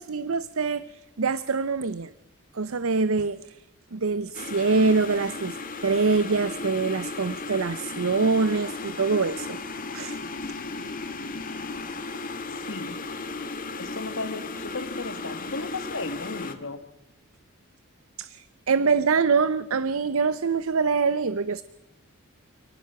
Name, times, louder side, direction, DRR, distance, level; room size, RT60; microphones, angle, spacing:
voice 1, 0.0-2.1 2.5-3.6 3.9-5.6 5.8-9.6 9.9-10.2 18.2-21.6, right 4 dB, 65° right, 16 dB, 0.7 m, -24 dB
sound 1, 4.3-16.5, left 3 dB, 40° left, 1.9 m, -35 dB
voice 2, 12.7-13.0 13.8-16.8, left 3 dB, 60° left, 10 dB, 1.8 m, -35 dB
28.5 x 19.0 x 5.9 m, 0.96 s
head